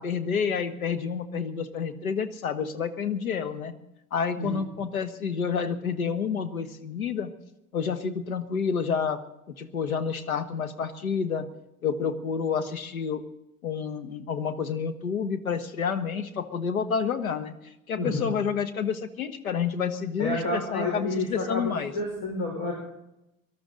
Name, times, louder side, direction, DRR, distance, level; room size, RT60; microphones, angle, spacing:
voice 1, 0.0-3.7 4.1-7.3 7.7-9.2 9.6-11.5 11.8-13.2 13.6-17.5 17.9-21.9, left 6 dB, 80° left, 10 dB, 1.4 m, -29 dB
voice 2, 17.9-18.4 20.2-22.7, left 1 dB, 60° left, -1 dB, 5.4 m, -30 dB
24.5 x 12.5 x 3.9 m, 0.87 s
figure-of-eight pair, 70°, 42 cm